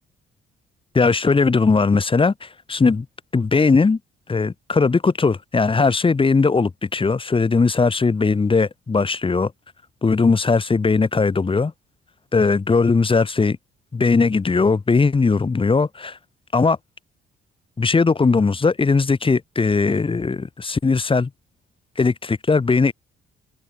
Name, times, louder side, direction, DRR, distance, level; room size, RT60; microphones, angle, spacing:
voice 1, 0.9-3.1 3.3-4.0 4.3-9.5 10.0-11.7 12.3-13.6 13.9-16.2 16.5-16.8 17.8-21.3 22.0-22.9, left 4 dB, 25° left, 1.8 m, -19 dB
cardioid pair, 90°, 20 cm